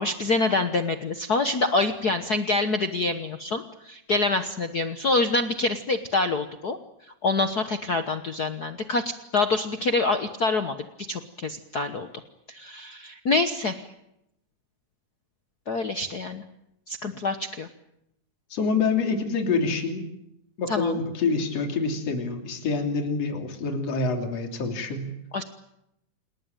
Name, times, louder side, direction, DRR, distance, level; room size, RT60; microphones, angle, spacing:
voice 1, 0.0-6.8 7.2-10.8 11.1-12.1 12.5-13.8 15.7-16.4 16.9-17.7 20.7-21.0 25.3-25.4, left 3 dB, 90° left, 8 dB, 0.8 m, -26 dB
voice 2, 18.5-20.1 20.6-25.1, left 4 dB, 50° left, 4 dB, 3.9 m, -26 dB
28.5 x 19.5 x 9.1 m, 0.84 s
omnidirectional pair, 3.7 m